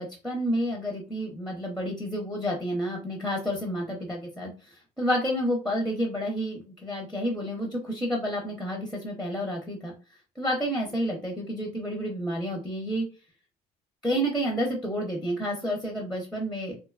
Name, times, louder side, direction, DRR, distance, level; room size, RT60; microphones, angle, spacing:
voice 1, 0.0-9.9 10.4-13.1 14.0-16.8, equal, ahead, 0 dB, 0.6 m, -30 dB
2.7 x 2.2 x 2.4 m, 0.32 s
cardioid pair, 110°, 17 cm